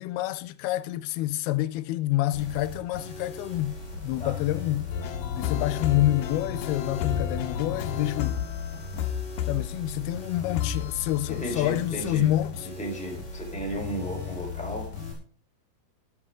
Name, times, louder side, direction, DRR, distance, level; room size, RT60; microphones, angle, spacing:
voice 1, 0.0-3.7 4.0-4.8 5.4-8.4 9.5-12.5, left 15 dB, 90° left, 2.6 m, -27 dB
sound 1, 2.3-15.1, left 5 dB, 45° left, 5.7 m, -37 dB
sound 2, 4.9-10.1 10.6-11.5 11.8-11.9, left 9 dB, 70° left, 2.5 m, -32 dB
voice 2, 11.3-12.3 12.6-14.9, right 1 dB, ahead, 3.7 m, -34 dB
16.0 x 10.5 x 3.7 m
omnidirectional pair, 4.4 m